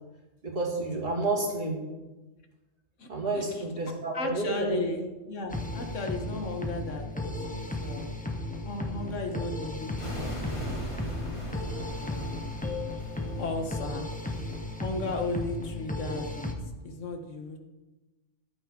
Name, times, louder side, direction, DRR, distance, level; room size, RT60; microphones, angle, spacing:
voice 1, 0.4-1.8 3.1-4.8, right 2 dB, 50° right, -1 dB, 2.6 m, -30 dB
voice 2, 3.3-3.7 4.1-8.1 8.6-11.1 11.9-12.5 13.4-14.1 14.8-16.5 16.8-17.6, left 2 dB, 85° left, 4 dB, 1.7 m, -35 dB
sound 1, 5.5-16.5, left 2 dB, 5° left, 1.0 m, -35 dB
sound 2, 10.0-15.2, equal, 25° left, 2.4 m, -40 dB
13.5 x 11.0 x 3.8 m, 1.1 s
omnidirectional pair, 1.2 m